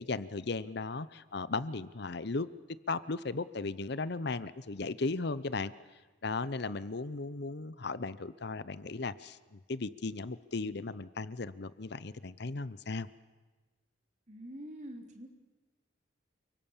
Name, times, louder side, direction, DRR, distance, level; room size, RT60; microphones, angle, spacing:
voice 1, 0.0-2.5 2.9-5.7 6.2-13.1, left 3 dB, 55° left, 16 dB, 0.8 m, -36 dB
voice 2, 14.3-15.3, equal, 40° right, 3 dB, 3.5 m, -45 dB
29.0 x 25.0 x 7.3 m, 1.2 s
head